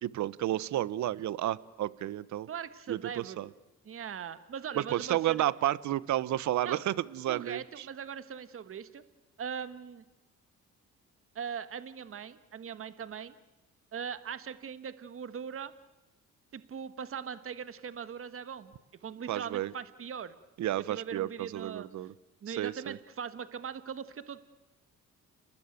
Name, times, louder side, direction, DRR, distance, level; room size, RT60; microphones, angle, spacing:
voice 1, 0.0-2.5 2.9-3.5 4.8-7.9 19.3-19.7 20.6-22.1 22.5-23.0, right 13 dB, 70° right, 19 dB, 0.9 m, -31 dB
voice 2, 2.5-3.4 3.8-5.4 6.6-6.8 7.3-9.0 9.4-10.0 11.3-13.3 13.9-15.7 16.5-18.7 19.0-20.4 20.9-21.9 22.4-24.4, right 7 dB, 45° right, 12 dB, 1.4 m, -40 dB
29.5 x 19.0 x 9.2 m, 1.0 s
cardioid pair, 90°, 30 cm